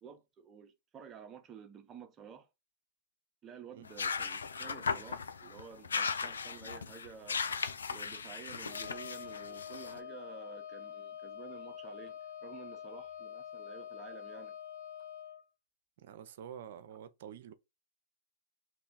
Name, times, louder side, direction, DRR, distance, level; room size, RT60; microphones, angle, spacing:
voice 1, 0.0-2.5 3.4-7.4 7.9-14.5, right 7 dB, 25° right, 0.7 m, -51 dB
sound 1, 3.8-10.0, left 5 dB, 90° left, 0.3 m, -37 dB
Wind instrument woodwind instrument, 8.7-15.4, left 9 dB, 50° left, 0.8 m, -46 dB
voice 2, 16.0-17.5, right 9 dB, 65° right, 0.5 m, -48 dB
3.1 x 2.3 x 3.9 m
hypercardioid pair, 115°, 0 cm